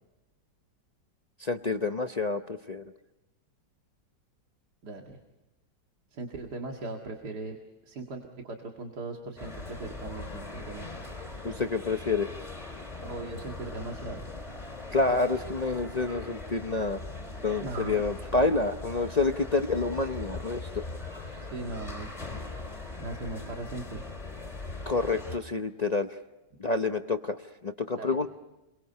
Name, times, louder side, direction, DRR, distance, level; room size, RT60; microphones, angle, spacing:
voice 1, 1.4-2.8 11.4-12.3 14.9-17.0 17.4-20.6 21.1-21.2 24.9-26.1 26.6-27.4 27.6-28.3, left 3 dB, 45° left, 6 dB, 0.5 m, -28 dB
voice 2, 4.8-5.2 6.1-7.6 7.8-11.1 13.0-14.2 17.6-18.0 21.3-22.1 22.9-24.0 27.9-28.2, right 2 dB, 65° right, 2 dB, 2.5 m, -39 dB
sound 1, 9.4-25.4, left 3 dB, 20° left, 3.3 m, -40 dB
30.0 x 23.0 x 5.5 m, 1.0 s
omnidirectional pair, 1.9 m